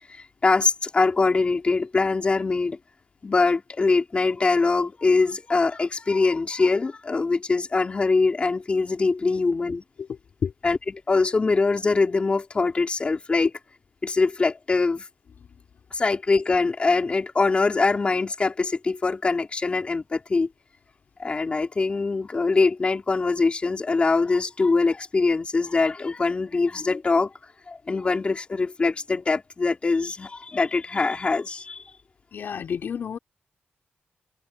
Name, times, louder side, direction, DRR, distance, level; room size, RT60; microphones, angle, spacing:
voice 1, 0.1-2.8 3.2-9.8 10.6-10.8 11.1-13.5 14.0-15.1 15.9-20.5 21.2-27.3 27.7-31.8, left 3 dB, 30° left, 4.7 m, -23 dB
voice 2, 10.0-10.5 32.3-33.2, left 7 dB, 60° left, 4.2 m, -30 dB
wide cardioid pair, 135°, 4 cm